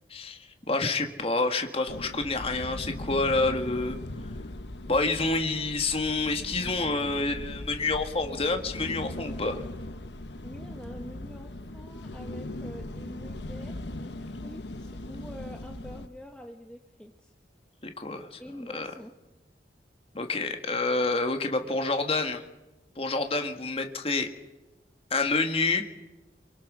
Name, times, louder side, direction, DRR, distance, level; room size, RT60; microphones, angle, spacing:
voice 1, 0.7-4.0 4.9-9.7 17.8-18.4 18.7-18.9 20.1-22.4 23.0-24.3 25.1-25.9, left 3 dB, 35° left, 5 dB, 1.9 m, -28 dB
sound 1, 1.9-16.1, left 1 dB, 80° left, 1.3 m, -39 dB
voice 2, 10.4-17.3 18.4-19.1, equal, 5° left, 2 dB, 1.5 m, -46 dB
29.5 x 24.0 x 6.3 m, 1.0 s
head